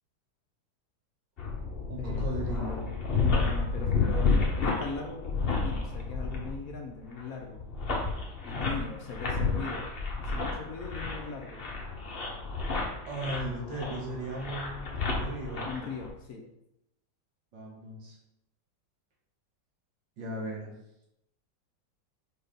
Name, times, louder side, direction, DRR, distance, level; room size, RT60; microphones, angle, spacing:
sound 1, 1.4-16.1, left 4 dB, 35° left, 1.1 m, -31 dB
voice 1, 1.9-2.9 13.1-15.7 17.5-18.2 20.2-20.7, right 1 dB, 80° right, -2 dB, 2.2 m, -37 dB
voice 2, 3.2-7.6 8.4-9.9 10.2-11.6 15.7-16.4, left 4 dB, 60° left, 2 dB, 1.2 m, -39 dB
4.8 x 4.6 x 5.1 m, 0.84 s
omnidirectional pair, 1.9 m